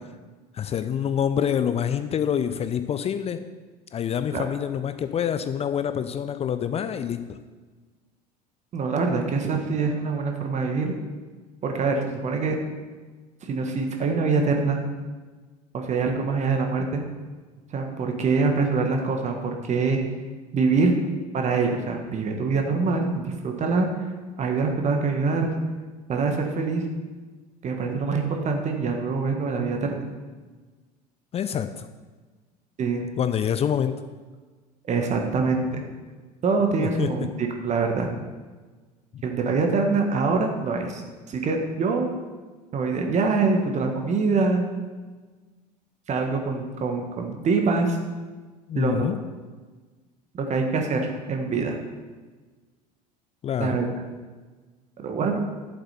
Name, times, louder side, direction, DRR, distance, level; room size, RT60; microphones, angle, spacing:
voice 1, 0.5-3.4 3.9-7.4 31.3-31.9 33.2-34.0 36.8-37.1 39.1-39.2 48.7-49.2 53.4-53.8, left 8 dB, 30° left, 10 dB, 0.6 m, -26 dB
voice 2, 8.7-10.9 11.6-12.6 13.4-14.8 15.7-17.0 17.7-20.0 20.5-20.9 21.3-23.9 24.4-25.5 26.1-26.8 27.6-30.1 32.8-33.1 34.9-35.8 36.4-38.1 39.2-41.0 41.3-42.1 42.7-44.7 46.1-48.0 48.7-49.0 50.3-51.0 51.3-51.8 53.6-53.9 55.0-55.4, right 4 dB, 35° right, 3 dB, 1.6 m, -24 dB
11.0 x 7.7 x 4.4 m, 1.4 s
figure-of-eight pair, 70°, 21 cm